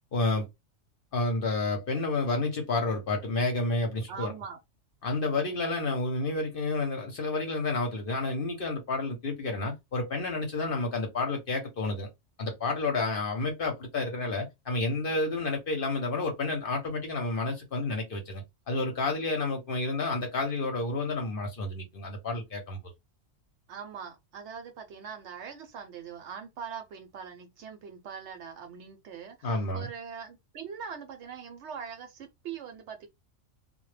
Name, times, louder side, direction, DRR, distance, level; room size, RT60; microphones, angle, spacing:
voice 1, 0.1-0.5 1.1-4.3 5.0-12.1 12.4-22.8 29.4-29.9, left 3 dB, 55° left, 0.7 m, -30 dB
voice 2, 4.1-4.6 23.7-33.1, right 7 dB, 65° right, 0.8 m, -42 dB
2.1 x 2.1 x 3.1 m
omnidirectional pair, 1.4 m